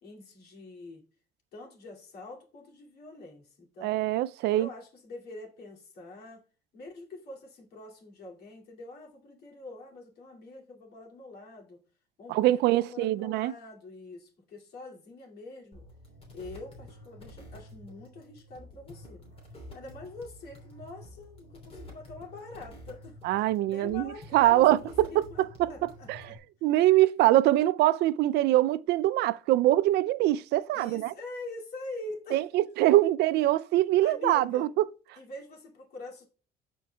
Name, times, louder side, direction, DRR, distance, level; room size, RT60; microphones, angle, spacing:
voice 1, 0.0-1.0 1.5-4.1 4.5-6.4 6.7-11.8 12.2-15.9 16.3-19.3 19.7-23.2 23.7-26.4 30.7-32.5 34.0-34.7 35.2-36.2, left 2 dB, 70° left, 2.5 m, -44 dB
voice 2, 3.8-4.7 12.3-13.5 23.2-25.7 26.1-26.3 26.6-31.1 32.3-34.9, right 15 dB, 80° right, 0.4 m, -24 dB
sound 1, 15.7-26.4, left 1 dB, 35° left, 3.0 m, -49 dB
13.5 x 4.7 x 2.3 m
cardioid pair, 110°, 17 cm